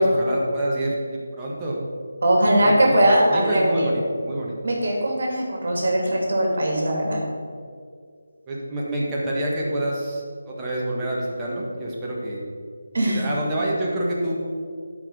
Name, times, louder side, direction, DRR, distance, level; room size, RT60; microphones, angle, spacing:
voice 1, 0.0-1.8 2.4-4.6 8.5-12.4 13.0-14.3, right 1 dB, 15° right, -6 dB, 1.7 m, -27 dB
voice 2, 2.2-3.9 4.6-7.2 12.9-13.2, right 1 dB, 65° right, -1 dB, 2.5 m, -20 dB
12.0 x 5.1 x 5.4 m, 2.1 s
figure-of-eight pair, 165°, 0 cm